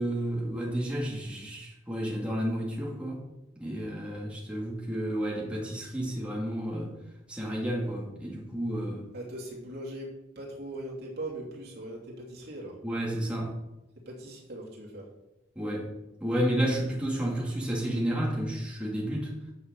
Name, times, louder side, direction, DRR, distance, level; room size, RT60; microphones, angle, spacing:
voice 1, 0.0-3.2 3.6-6.9 7.3-9.0 12.8-13.6 15.6-15.9 16.2-19.3, right 1 dB, 5° right, -4 dB, 2.3 m, -31 dB
voice 2, 9.1-12.8 14.0-15.1, right 1 dB, 55° right, -3 dB, 2.9 m, -40 dB
9.1 x 6.5 x 6.6 m, 0.94 s
head